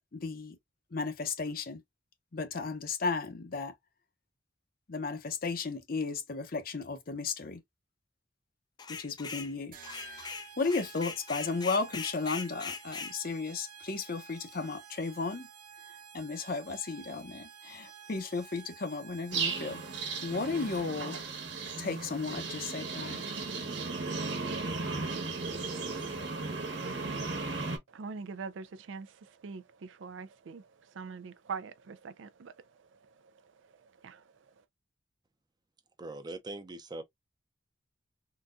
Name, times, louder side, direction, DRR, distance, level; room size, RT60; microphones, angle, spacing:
voice 1, 0.1-0.6 0.9-1.8 2.3-3.7 4.9-7.6 8.9-9.7 10.6-15.5 16.1-19.8 20.2-21.2 21.8-23.3, left 4 dB, 50° left, 0.7 m, -34 dB
sound 1, 8.8-9.5 9.8-13.1, left 5 dB, 25° left, 0.4 m, -40 dB
sound 2, 9.7-21.1, right 7 dB, 50° right, 1.1 m, -51 dB
sound 3, 19.3-27.8, right 4 dB, 65° right, 1.2 m, -36 dB
voice 2, 27.9-34.6, right 5 dB, 85° right, 0.4 m, -44 dB
voice 3, 36.0-37.0, right 2 dB, 20° right, 0.6 m, -41 dB
3.9 x 2.3 x 2.4 m
head